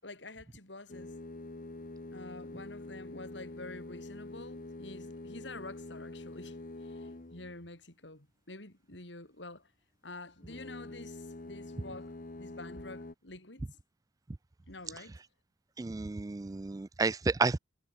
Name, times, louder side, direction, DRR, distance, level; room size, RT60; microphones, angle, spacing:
voice 1, 0.0-1.2 2.1-9.7 10.0-13.8 14.7-15.2, left 2 dB, 75° left, 5.7 m, -48 dB
sound 1, 0.9-7.7 10.4-13.1, left 2 dB, 50° left, 1.1 m, -45 dB
voice 2, 15.8-17.6, right 4 dB, 20° right, 0.3 m, -31 dB
head